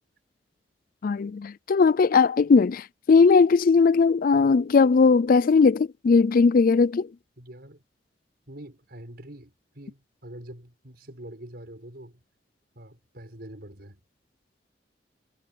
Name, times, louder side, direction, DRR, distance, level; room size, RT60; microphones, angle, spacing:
voice 1, 1.0-7.1, left 4 dB, 55° left, 0.4 m, -19 dB
voice 2, 7.4-7.8 8.5-12.2 12.7-14.0, right 1 dB, 60° right, 6.3 m, -44 dB
head